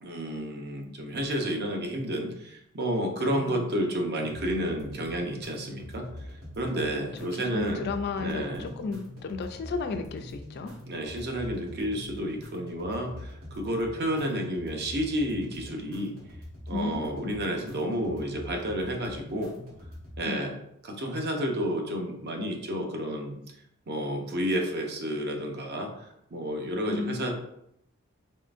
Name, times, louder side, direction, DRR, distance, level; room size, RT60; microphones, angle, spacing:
voice 1, 0.0-6.1 6.6-7.9 8.2-8.7 10.9-16.1 16.7-19.5 20.2-20.6 20.8-23.3 23.9-27.3, equal, 50° right, 2 dB, 0.7 m, -31 dB
voice 2, 3.2-3.7 7.3-10.7 16.7-17.3 20.3-20.4 26.9-27.3, left 3 dB, 50° left, 7 dB, 0.3 m, -34 dB
sound 1, 4.2-20.2, left 1 dB, 70° right, 1.5 m, -44 dB
4.0 x 3.7 x 2.5 m, 0.77 s
head